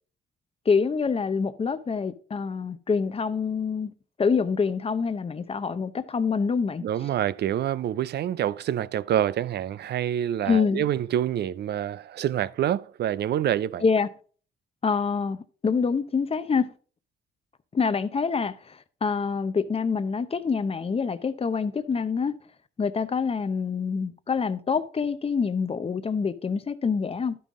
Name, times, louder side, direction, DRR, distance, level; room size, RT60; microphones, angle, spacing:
voice 1, 0.7-3.9 4.2-6.8 10.5-10.9 13.8-14.1 14.8-16.7 17.7-22.4 22.8-27.4, left 5 dB, 30° left, 0.7 m, -26 dB
voice 2, 6.8-13.8, right 11 dB, 55° right, 0.4 m, -27 dB
12.0 x 5.5 x 3.6 m
cardioid pair, 90°, 20 cm